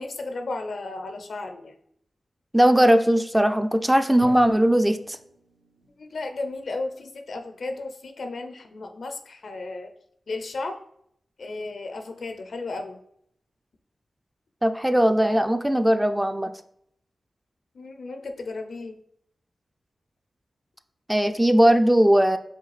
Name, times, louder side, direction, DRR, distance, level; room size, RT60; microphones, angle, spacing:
voice 1, 0.0-1.7 6.0-9.9 10.3-10.8 11.4-13.0 17.7-19.0, left 3 dB, 75° left, 6 dB, 0.5 m, -34 dB
voice 2, 2.5-5.2 14.6-16.5 21.1-22.4, right 1 dB, 10° right, 8 dB, 0.3 m, -19 dB
Drum, 4.2-6.1, right 1 dB, 90° right, 0.6 m, -45 dB
5.0 x 2.3 x 3.2 m, 0.71 s
cardioid pair, 50°, 0 cm